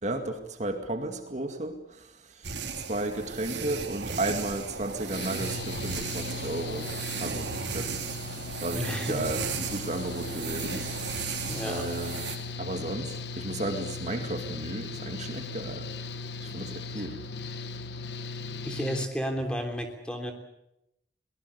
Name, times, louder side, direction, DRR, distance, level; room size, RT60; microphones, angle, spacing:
voice 1, 0.0-6.9 7.2-11.4 11.6-12.3 12.6-15.9 16.4-17.2, right 2 dB, 40° right, 6 dB, 2.1 m, -34 dB
sound 1, 2.4-12.4, right 5 dB, 90° right, 3.3 m, -35 dB
Engine / Mechanical fan, 5.1-19.1, left 3 dB, 70° left, 1.3 m, -38 dB
voice 2, 8.7-9.2 11.5-11.9 18.6-20.3, equal, 5° left, 4 dB, 3.2 m, -32 dB
23.5 x 19.0 x 8.2 m, 0.83 s
head